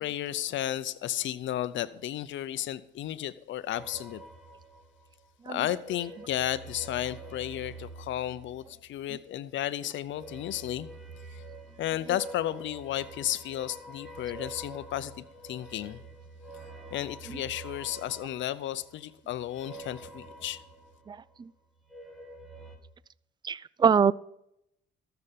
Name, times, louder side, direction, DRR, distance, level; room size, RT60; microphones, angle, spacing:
voice 1, 0.0-4.2 5.5-10.9 11.3-11.4 11.8-16.0 16.9-20.6, left 12 dB, 70° left, 0.6 m, -33 dB
sound 1, 3.7-5.3 5.7-9.2 10.0-21.4 21.7-22.8, right 2 dB, ahead, 2.0 m, -47 dB
voice 2, 21.1-21.5 23.4-24.1, right 6 dB, 20° right, 0.3 m, -24 dB
13.5 x 6.9 x 5.8 m
cardioid pair, 90°, 20 cm